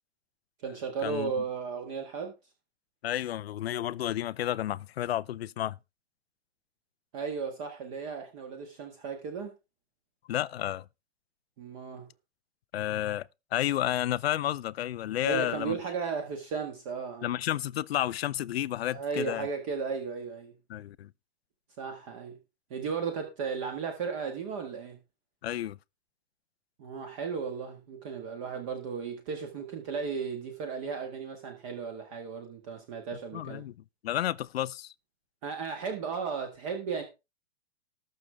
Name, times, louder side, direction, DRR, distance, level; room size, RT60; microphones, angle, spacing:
voice 1, 0.6-2.3 7.1-9.5 11.6-12.1 15.2-17.4 18.9-20.5 21.8-22.4 22.7-25.0 26.8-33.7 35.4-37.0, right 5 dB, 30° right, 1.7 m, -35 dB
voice 2, 3.0-5.8 10.3-10.9 12.7-15.8 17.2-19.5 20.7-21.1 25.4-25.8 33.3-33.7 34.0-34.9, left 12 dB, 60° left, 0.5 m, -31 dB
19.5 x 6.6 x 3.4 m
hypercardioid pair, 175°, 36 cm